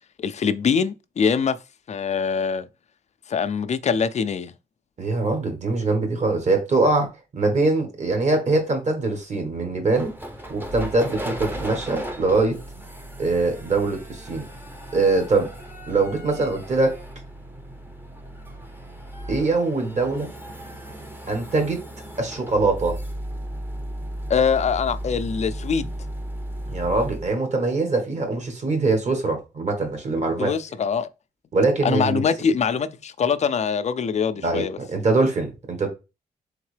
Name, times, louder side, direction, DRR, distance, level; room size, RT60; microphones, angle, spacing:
voice 1, 0.2-1.6 1.9-2.7 3.3-4.5 24.3-25.9 30.4-31.1 31.8-34.8, left 6 dB, 45° left, 0.4 m, -23 dB
voice 2, 5.0-10.1 10.5-12.6 13.2-14.5 14.9-15.5 15.9-17.0 19.3-20.3 21.3-21.8 22.2-23.0 26.7-30.5 31.5-32.2 34.4-34.6 34.9-35.9, right 3 dB, 45° right, 1.4 m, -23 dB
sound 1, 9.9-27.3, right 1 dB, 10° right, 0.7 m, -35 dB
3.6 x 3.5 x 3.3 m
cardioid pair, 100°, 17 cm